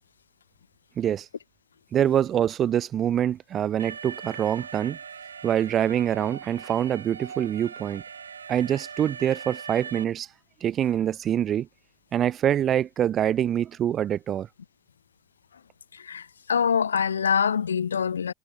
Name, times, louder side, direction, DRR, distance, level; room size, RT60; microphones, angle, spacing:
voice 1, 1.9-5.0 5.4-8.0 8.5-10.3 10.6-11.7 12.1-14.5, right 10 dB, 40° right, 4.0 m, -25 dB
Alarm, 3.8-10.0, right 6 dB, 85° right, 7.7 m, -40 dB
voice 2, 15.9-18.3, left 7 dB, 85° left, 5.0 m, -25 dB
figure-of-eight pair, 65°, 0 cm